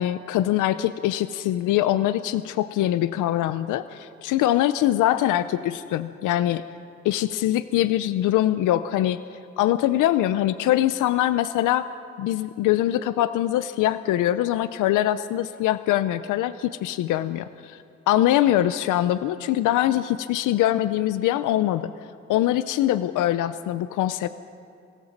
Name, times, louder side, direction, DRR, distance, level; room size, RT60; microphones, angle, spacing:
voice 1, 0.0-6.6 7.0-9.2 9.6-11.9 12.2-17.8 18.1-21.9 22.3-24.3, left 13 dB, 90° left, 12 dB, 0.7 m, -23 dB
24.5 x 17.0 x 7.3 m, 2.4 s
cardioid pair, 90°, 30 cm